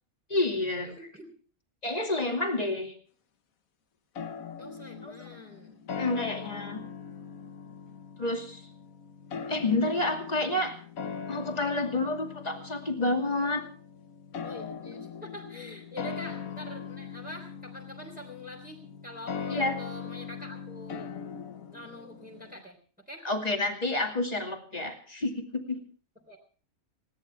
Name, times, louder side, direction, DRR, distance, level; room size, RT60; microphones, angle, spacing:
voice 1, 0.3-0.9 1.8-2.9 5.0-5.1 6.0-6.8 8.2-8.6 9.5-10.8 11.3-13.7 19.5-19.7 23.2-25.8, left 2 dB, 25° left, 3 dB, 2.5 m, -29 dB
voice 2, 0.8-1.3 4.6-6.6 14.4-21.1 21.7-22.8 23.1-23.2 26.3-26.4, left 1 dB, 5° right, -1 dB, 3.4 m, -45 dB
sound 1, 4.1-22.6, left 6 dB, 70° left, 1.5 m, -41 dB
20.5 x 17.0 x 3.4 m, 0.41 s
omnidirectional pair, 1.5 m